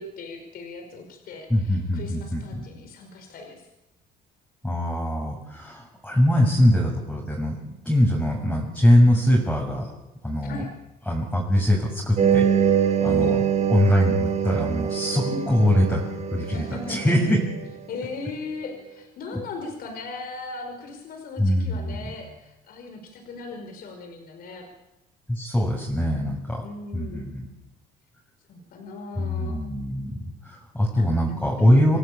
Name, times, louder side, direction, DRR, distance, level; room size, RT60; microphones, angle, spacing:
voice 1, 0.0-3.7 10.4-10.7 13.0-13.4 15.2-15.5 16.5-17.2 17.9-24.7 26.6-27.2 28.5-29.6 30.9-31.8, left 3 dB, 60° left, 4 dB, 5.4 m, -38 dB
voice 2, 1.5-2.6 4.6-9.9 10.2-10.6 11.1-13.4 13.7-16.0 16.3-17.4 21.4-22.1 25.3-26.6 26.9-27.5 29.2-30.2 30.4-32.0, left 1 dB, 5° left, -2 dB, 7.1 m, -22 dB
sound 1, 12.2-17.7, right 8 dB, 45° right, 3.2 m, -24 dB
28.0 x 17.5 x 8.8 m, 0.96 s
cardioid pair, 110°, 17 cm